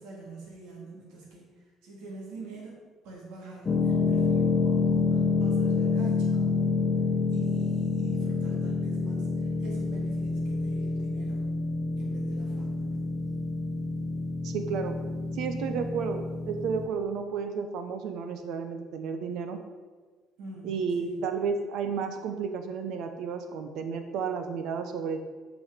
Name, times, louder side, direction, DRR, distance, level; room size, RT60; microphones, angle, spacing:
voice 1, 0.0-2.7 3.0-6.8 7.3-11.4 12.0-13.1 20.4-20.7 21.0-21.2, right 2 dB, 90° right, -3 dB, 2.9 m, -45 dB
sound 1, 3.7-16.9, left 4 dB, 20° left, 0.6 m, -28 dB
voice 2, 14.4-15.0 15.3-19.6 20.6-25.2, right 6 dB, 65° right, 7 dB, 0.8 m, -32 dB
8.8 x 6.2 x 5.1 m, 1.4 s
cardioid pair, 170°, 0 cm